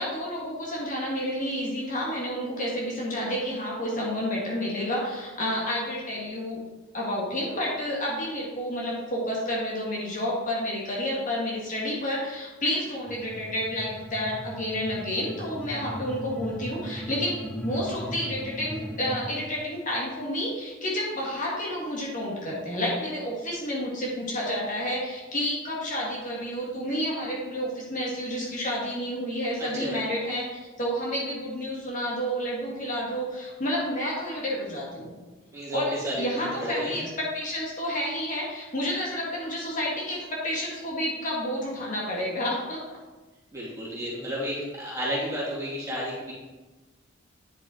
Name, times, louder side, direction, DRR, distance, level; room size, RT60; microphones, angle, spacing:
voice 1, 0.0-6.6 6.9-35.1 35.7-42.8, equal, 40° left, -4 dB, 1.9 m, -30 dB
sound 1, 13.1-19.3, equal, 5° left, 0.6 m, -38 dB
voice 2, 29.6-30.0 35.5-36.3 36.6-37.0 43.5-46.3, equal, 15° right, -7 dB, 2.9 m, -32 dB
9.9 x 5.3 x 4.4 m, 1.2 s
head